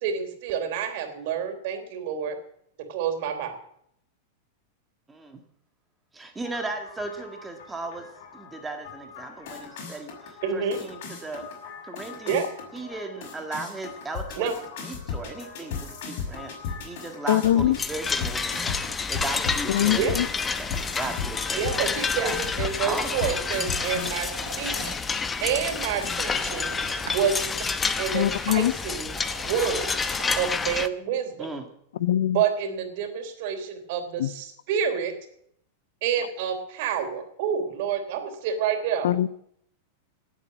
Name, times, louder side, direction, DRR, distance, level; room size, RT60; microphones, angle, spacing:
voice 1, 0.0-2.4 2.9-3.6 10.4-10.8 12.3-12.5 14.4-14.5 20.0-20.2 21.6-24.3 24.6-24.9 25.4-26.8 27.0-27.6 28.0-29.1 29.4-29.9 30.4-31.5 32.3-35.1 36.0-39.1, right 7 dB, 60° right, 6 dB, 3.4 m, -28 dB
voice 2, 5.1-5.4 6.1-8.1 8.3-11.5 11.8-12.4 12.7-14.5 14.8-20.2 20.6-22.4 22.9-23.2 31.4-31.7, right 3 dB, 10° right, 5 dB, 1.8 m, -36 dB
sound 1, 6.4-24.1 24.5-25.3 25.7-26.2, left 5 dB, 65° left, 6.1 m, -37 dB
voice 3, 17.3-17.8 19.7-20.3 23.9-24.1 28.1-28.7 32.0-32.4 34.2-34.3 39.0-39.3, left 12 dB, 80° left, 18 dB, 0.7 m, -22 dB
sound 2, 17.8-30.9, left 5 dB, 15° left, 0.9 m, -29 dB
sound 3, 23.0-25.0 26.3-27.4 28.9-30.4, right 7 dB, 80° right, 3.2 m, -42 dB
18.5 x 8.4 x 7.5 m, 0.71 s
supercardioid pair, 140°, 0 cm